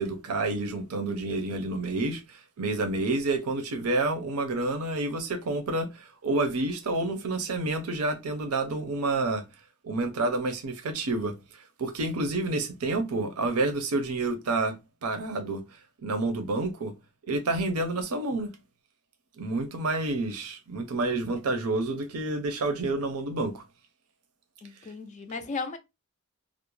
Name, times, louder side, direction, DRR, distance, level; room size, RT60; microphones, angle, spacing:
voice 1, 0.0-9.4 9.8-14.7 15.0-15.6 16.0-16.9 17.3-18.5 19.4-23.6, right 2 dB, 85° right, 0.6 m, -29 dB
voice 2, 24.6-25.8, left 4 dB, 30° left, 0.3 m, -35 dB
2.4 x 2.0 x 3.0 m
head